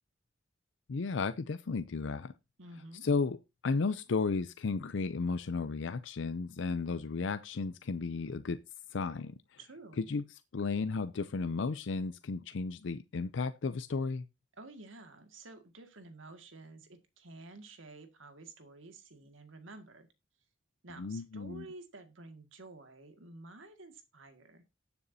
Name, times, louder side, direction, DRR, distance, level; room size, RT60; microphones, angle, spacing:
voice 1, 0.9-2.3 3.0-3.4 3.6-8.6 8.9-9.3 10.0-10.2 10.5-14.2 21.0-21.7, left 4 dB, 65° left, 0.5 m, -33 dB
voice 2, 2.6-3.1 9.6-10.1 14.6-20.1 20.8-24.6, right 2 dB, 90° right, 2.0 m, -51 dB
19.0 x 6.9 x 2.7 m
head